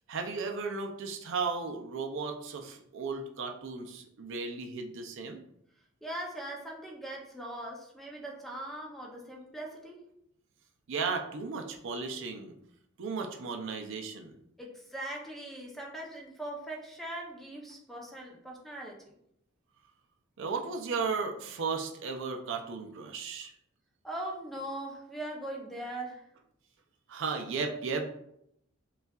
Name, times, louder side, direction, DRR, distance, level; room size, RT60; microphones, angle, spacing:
voice 1, 0.1-5.4 10.9-12.5 13.0-14.3 20.4-23.5 27.1-28.1, right 4 dB, 60° right, 4 dB, 0.4 m, -35 dB
voice 2, 6.0-10.0 14.6-19.1 24.0-26.3, right 1 dB, ahead, -1 dB, 0.6 m, -40 dB
5.4 x 2.3 x 2.3 m, 0.75 s
head